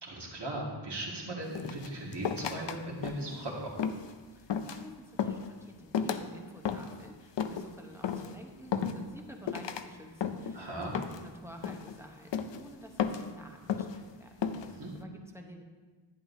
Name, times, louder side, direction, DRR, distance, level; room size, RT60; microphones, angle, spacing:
voice 1, 0.0-3.8 10.5-10.9 14.6-14.9, right 1 dB, 60° right, -4 dB, 2.1 m, -38 dB
sound 1, 1.6-2.8 3.0-3.4 3.8-4.1 4.5-4.9 5.2-5.5 5.9-6.3 6.7-7.0 7.4-7.7 8.0-8.3 8.7-9.2 9.5-9.9 10.2-10.6 10.9-11.3 11.6-12.0 12.3-12.6 13.0-13.3 13.7-14.0 14.4-14.7, left 7 dB, 65° left, 0.6 m, -33 dB
voice 2, 4.3-15.6, right 1 dB, 5° right, 1 dB, 0.9 m, -50 dB
11.0 x 9.2 x 2.7 m, 1.4 s
wide cardioid pair, 105°, 47 cm